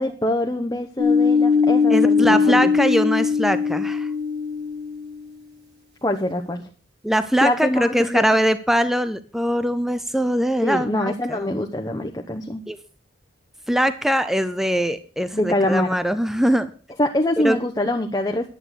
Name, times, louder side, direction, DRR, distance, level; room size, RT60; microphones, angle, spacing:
voice 1, 0.0-2.8 6.0-6.7 7.4-8.2 10.6-12.6 15.3-16.0 17.0-18.5, left 1 dB, 20° left, 3 dB, 0.9 m, -24 dB
sound 1, 1.0-5.2, left 5 dB, 60° right, 4.9 m, -20 dB
voice 2, 1.9-4.1 7.0-11.5 12.7-12.8 13.7-16.7 17.4-17.6, equal, ahead, 13 dB, 0.6 m, -22 dB
11.0 x 8.8 x 6.4 m, 0.39 s
head